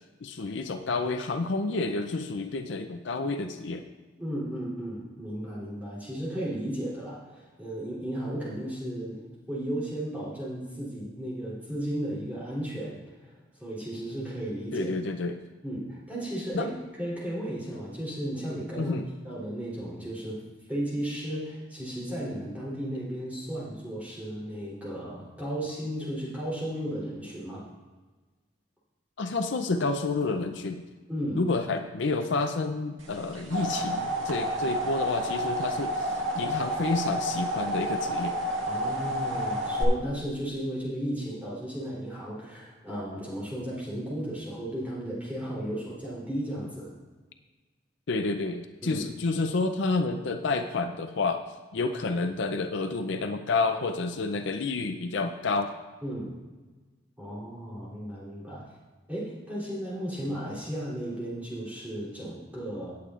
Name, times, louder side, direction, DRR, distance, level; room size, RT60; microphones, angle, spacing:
voice 1, 0.2-3.8 14.7-15.4 16.5-16.7 18.8-19.0 29.2-30.9 31.4-38.4 48.1-51.4 51.7-55.7, left 3 dB, 65° left, 7 dB, 0.5 m, -29 dB
voice 2, 4.2-15.0 15.6-19.0 19.2-20.4 20.7-27.6 31.1-31.4 38.6-46.9 48.8-49.1 56.0-56.3 57.2-58.7 59.1-62.9, right 1 dB, 10° right, -8 dB, 3.4 m, -34 dB
sound 1, 33.1-39.8, equal, 80° right, 1.8 m, -30 dB
17.5 x 8.2 x 2.5 m, 1.3 s
head